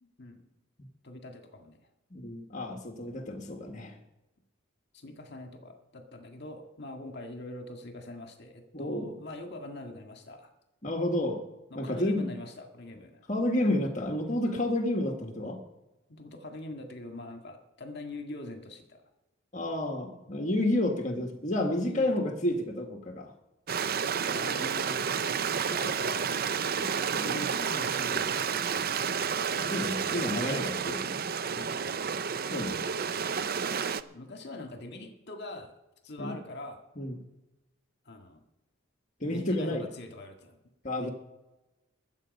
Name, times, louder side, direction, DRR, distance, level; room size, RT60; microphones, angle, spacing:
voice 1, 0.0-0.4 1.0-1.8 4.9-10.5 11.7-13.2 16.1-19.0 21.8-22.3 24.2-25.2 25.5-29.0 31.5-31.7 34.0-35.7 36.0-36.9 38.1-38.4 39.3-40.6 41.0-41.1, left 2 dB, 50° left, 5 dB, 1.8 m, -43 dB
voice 2, 2.1-4.0 8.7-9.1 10.8-11.4 11.7-12.4 13.3-15.6 19.5-23.3 26.7-27.4 29.6-31.2 32.5-32.8 36.2-36.3 37.0-37.2 39.2-39.9 40.8-41.1, left 1 dB, 35° left, 3 dB, 1.5 m, -30 dB
Stream, 23.7-34.0, right 6 dB, 45° right, 0.5 m, -30 dB
21.5 x 8.0 x 5.3 m, 1.0 s
head